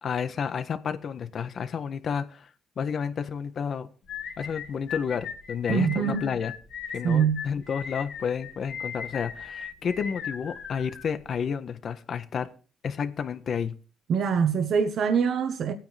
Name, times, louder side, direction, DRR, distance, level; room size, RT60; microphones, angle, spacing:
voice 1, 0.0-2.5 2.8-3.9 4.4-6.5 6.9-12.5 12.8-13.8, left 7 dB, 55° left, 1.4 m, -31 dB
sound 1, 4.1-11.4, left 7 dB, 75° left, 2.6 m, -38 dB
voice 2, 5.7-6.3 7.0-7.4 14.1-15.7, right 6 dB, 65° right, 1.4 m, -24 dB
16.0 x 9.3 x 3.5 m
cardioid pair, 90°, 0 cm